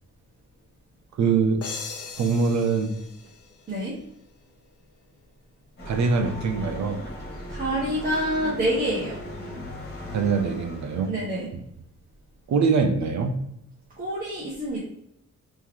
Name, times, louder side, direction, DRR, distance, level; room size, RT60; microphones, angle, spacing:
voice 1, 1.2-1.6 2.2-2.9 5.9-7.0 10.1-11.1 12.5-13.4, right 5 dB, 65° right, 6 dB, 0.6 m, -23 dB
sound 1, 1.6-4.3, left 5 dB, 55° left, 0.7 m, -39 dB
sound 2, 5.8-11.1, left 1 dB, 30° left, 1.8 m, -38 dB
voice 2, 7.5-9.2 11.1-11.5 14.0-14.8, equal, 30° right, -7 dB, 1.2 m, -27 dB
4.6 x 3.1 x 3.6 m, 0.76 s
wide cardioid pair, 165°, 30 cm